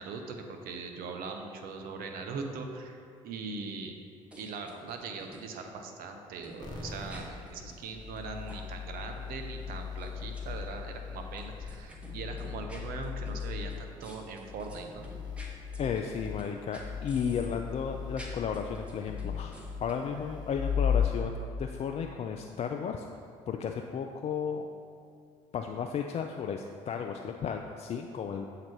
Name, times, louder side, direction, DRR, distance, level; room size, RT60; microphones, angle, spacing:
voice 1, 0.0-3.0 3.2-4.0 4.4-15.1, right 4 dB, 65° right, 4 dB, 0.7 m, -40 dB
sound 1, 4.3-5.4 6.4-8.2 8.5-8.6 10.0-10.4 11.4-16.5 16.7-17.6 18.0-20.2, equal, 5° right, 1.1 m, -50 dB
sound 2, 6.6-21.1, left 7 dB, 25° left, 1.1 m, -37 dB
voice 2, 15.8-23.1 23.5-24.7 25.5-28.5, left 6 dB, 40° left, 3 dB, 0.4 m, -34 dB
7.4 x 2.9 x 4.5 m, 2.3 s
hypercardioid pair, 50°, 16 cm